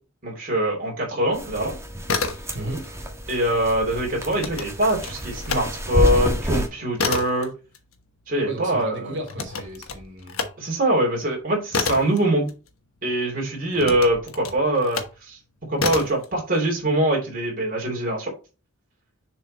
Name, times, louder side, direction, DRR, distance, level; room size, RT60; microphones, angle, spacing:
voice 1, 0.2-1.7 3.3-7.5 8.3-9.1 10.6-12.5 13.0-15.4 15.7-18.3, right 1 dB, 45° right, 2.8 m, -23 dB
sound 1, 1.3-6.7, equal, 15° right, 1.4 m, -28 dB
sound 2, 1.9-2.9 3.2-5.7 6.1-13.1 13.7-15.2 15.8-16.3, left 4 dB, 75° left, 1.2 m, -30 dB
voice 2, 2.5-2.9 8.4-10.4, right 1 dB, 60° right, 2.9 m, -34 dB
6.8 x 4.6 x 4.1 m
head